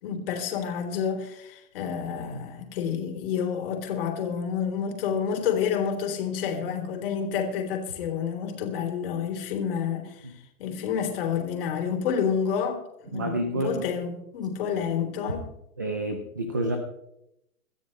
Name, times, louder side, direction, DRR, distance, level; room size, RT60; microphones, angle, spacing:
voice 1, 0.0-10.3 10.6-15.4, left 7 dB, 40° left, 3.6 m, -29 dB
voice 2, 13.1-13.9 15.8-16.8, right 1 dB, 15° right, 0.4 m, -29 dB
23.5 x 13.5 x 3.2 m
hypercardioid pair, 165°, 44 cm